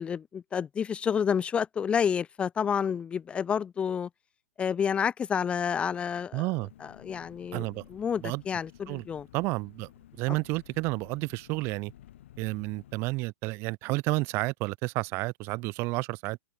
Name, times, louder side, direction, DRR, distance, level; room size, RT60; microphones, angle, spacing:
voice 1, 0.0-4.1 4.6-6.5 6.8-9.3, left 7 dB, 15° left, 1.1 m, -29 dB
voice 2, 6.3-6.7 7.5-7.8 8.2-8.4 8.9-9.0 9.3-9.9 10.2-11.9 12.4-16.4, right 23 dB, 35° right, 1.8 m, -31 dB
Engine, 6.5-13.0, left 12 dB, 60° left, 6.3 m, -54 dB
hypercardioid pair, 145°, 7 cm